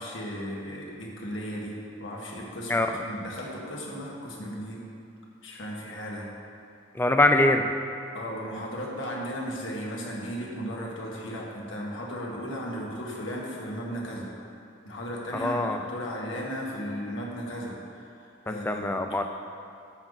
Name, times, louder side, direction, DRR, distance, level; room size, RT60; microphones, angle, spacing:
voice 1, 0.0-4.8 5.4-6.3 8.1-14.3 14.9-18.9, equal, 90° left, -3 dB, 1.8 m, -36 dB
voice 2, 6.9-7.7 15.4-15.8 18.5-19.2, left 2 dB, 10° left, 6 dB, 0.4 m, -23 dB
10.5 x 7.8 x 4.1 m, 2.5 s
head